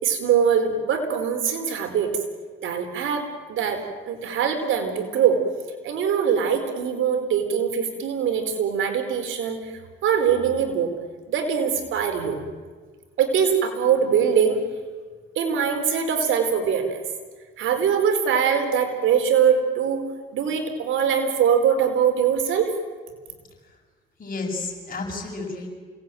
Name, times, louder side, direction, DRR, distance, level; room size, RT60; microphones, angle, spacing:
voice 1, 0.0-2.1 2.6-3.8 4.1-5.4 5.8-11.0 11.3-12.4 13.2-14.6 15.4-17.0 17.6-20.0 20.3-22.7, right 7 dB, 80° right, 6 dB, 4.1 m, -22 dB
voice 2, 24.2-25.7, left 3 dB, 45° left, 1 dB, 7.7 m, -32 dB
28.5 x 19.0 x 9.1 m, 1.5 s
cardioid pair, 90°, 20 cm